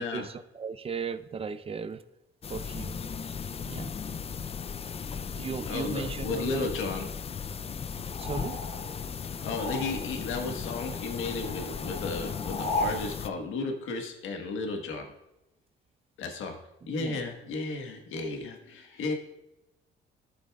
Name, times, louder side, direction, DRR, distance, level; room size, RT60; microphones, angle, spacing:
voice 1, 0.0-2.0 2.5-3.0 3.7-3.9 4.4-4.5 5.3-6.7 8.2-8.6 16.8-17.2, right 5 dB, 30° right, 13 dB, 0.6 m, -36 dB
sound 1, 2.4-13.3, left 6 dB, 30° left, 0.4 m, -36 dB
voice 2, 5.6-7.1 9.2-15.1 16.2-16.6 16.9-19.1, left 3 dB, 85° left, 3 dB, 1.4 m, -34 dB
sound 2, 8.1-10.3 10.6-13.1, left 1 dB, 55° left, 2.9 m, -36 dB
14.0 x 7.9 x 2.4 m, 0.92 s
cardioid pair, 90°, 20 cm